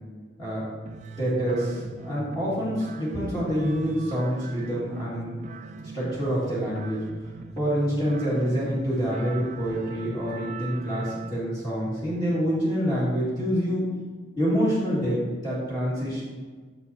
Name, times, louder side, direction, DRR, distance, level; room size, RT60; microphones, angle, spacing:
sound 1, 0.8-11.4, right 4 dB, 40° right, 0.3 m, -41 dB
voice 1, 1.2-5.3 5.9-7.0 7.6-13.9 14.4-16.2, equal, 25° left, -10 dB, 2.2 m, -26 dB
8.2 x 6.7 x 2.8 m, 1.4 s
head